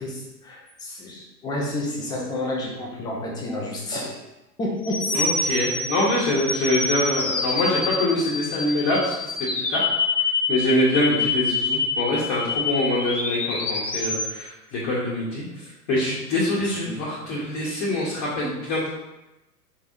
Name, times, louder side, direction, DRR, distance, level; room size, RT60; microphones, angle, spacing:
voice 1, 0.0-4.2 4.6-5.2 16.6-17.0, left 1 dB, 10° left, -2 dB, 0.4 m, -30 dB
sound 1, 4.8-14.3, left 4 dB, 75° left, 0.8 m, -27 dB
voice 2, 5.1-10.0 10.5-15.4 15.9-18.9, left 1 dB, 30° left, -7 dB, 1.1 m, -24 dB
4.6 x 3.4 x 2.6 m, 0.98 s
figure-of-eight pair, 95°, 48 cm